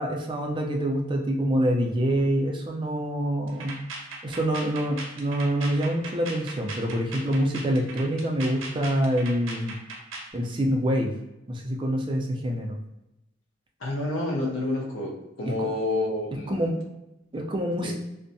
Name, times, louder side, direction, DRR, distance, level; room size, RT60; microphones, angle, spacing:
voice 1, 0.0-3.8 4.2-9.8 10.3-11.1 11.5-12.8 15.6-15.7 16.5-16.8 17.3-17.9, equal, 25° right, 1 dB, 0.3 m, -26 dB
sound 1, 3.5-10.3, right 3 dB, 75° right, 0.6 m, -39 dB
voice 2, 13.8-16.7 17.8-17.9, left 2 dB, 85° left, -1 dB, 0.6 m, -29 dB
2.5 x 2.1 x 2.6 m, 0.93 s
head